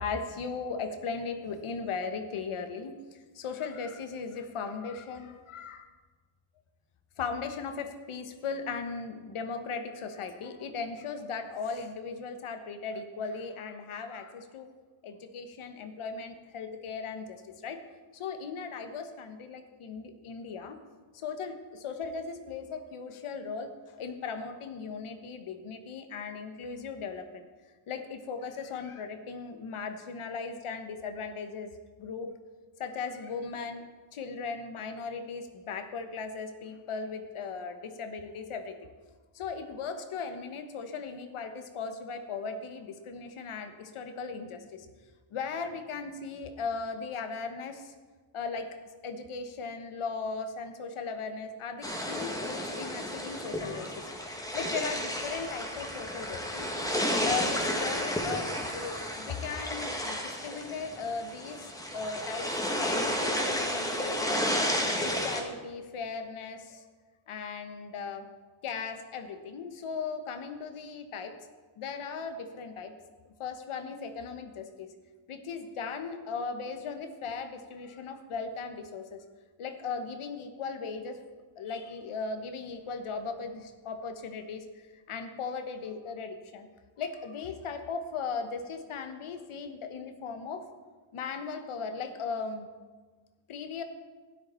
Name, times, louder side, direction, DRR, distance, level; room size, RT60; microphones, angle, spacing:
voice 1, 0.0-5.9 7.2-14.7 15.0-17.4 17.6-17.8 18.1-20.8 21.1-23.7 24.0-27.4 27.9-31.7 32.0-32.3 32.8-33.8 34.1-38.8 39.3-44.9 45.3-47.9 48.3-48.7 49.0-54.1 54.4-56.7 57.2-64.5 65.0-66.8 67.3-68.3 68.6-71.3 71.8-72.9 73.4-74.9 75.3-79.2 79.6-81.2 81.6-86.7 87.0-90.6 91.1-92.7 93.5-93.8, left 5 dB, 80° left, 8 dB, 1.2 m, -37 dB
sound 1, 51.8-65.4, equal, 5° left, 1.5 m, -32 dB
12.5 x 9.6 x 4.4 m, 1.4 s
cardioid pair, 100°, 49 cm